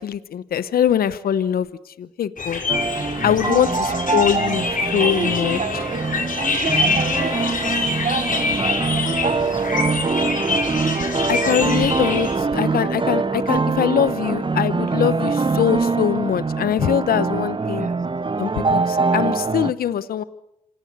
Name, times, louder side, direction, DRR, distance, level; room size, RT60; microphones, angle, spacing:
voice 1, 0.0-2.6 3.2-4.6 4.9-5.6 11.3-17.9 18.4-20.2, left 9 dB, 75° left, 15 dB, 0.9 m, -22 dB
sound 1, 2.4-12.3, left 4 dB, 60° left, 6.4 m, -25 dB
sound 2, 2.7-19.7, right 4 dB, 35° right, 0.9 m, -23 dB
voice 2, 3.5-4.2 5.0-6.0 6.4-10.7 17.6-18.0, right 4 dB, 55° right, 8 dB, 4.8 m, -31 dB
27.0 x 18.0 x 8.0 m, 0.80 s
supercardioid pair, 40°, 15 cm